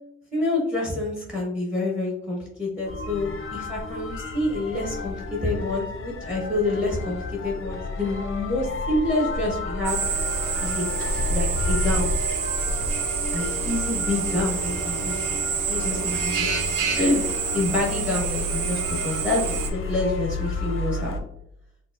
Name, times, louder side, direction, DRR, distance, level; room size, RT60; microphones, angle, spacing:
voice 1, 0.3-5.1 5.4-10.0 10.6-10.9 11.3-12.1 13.3-15.2 15.7-16.5 17.0-17.2 17.5-21.2, left 2 dB, 5° right, -3 dB, 1.0 m, -27 dB
sound 1, 2.9-21.2, left 2 dB, 45° left, 0.5 m, -31 dB
Drill, 9.8-19.7, right 7 dB, 85° right, 0.5 m, -28 dB
4.5 x 2.2 x 2.4 m, 0.76 s
wide cardioid pair, 105°, 30 cm